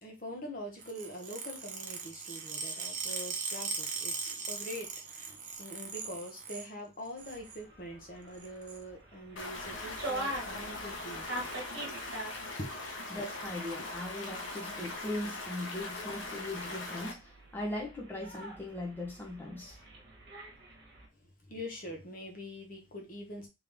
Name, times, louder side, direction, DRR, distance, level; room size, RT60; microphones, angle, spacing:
voice 1, 0.0-11.3 12.6-12.7 21.5-23.5, equal, 45° left, 1.2 m, -44 dB
sound 1, 0.8-6.7 7.0-7.6 8.3-8.8 9.9-10.1 11.1-11.4 11.7-11.8 12.1-12.2 12.5-12.9 13.6-13.7 14.6-14.7, right 5 dB, 40° right, 0.8 m, -39 dB
sound 2, 7.2-21.1, right 1 dB, 60° right, 1.3 m, -45 dB
Stream, 9.4-17.1, left 2 dB, 80° left, 1.1 m, -41 dB
voice 2, 13.1-19.7, left 1 dB, 10° left, 0.9 m, -39 dB
3.6 x 3.3 x 3.5 m
head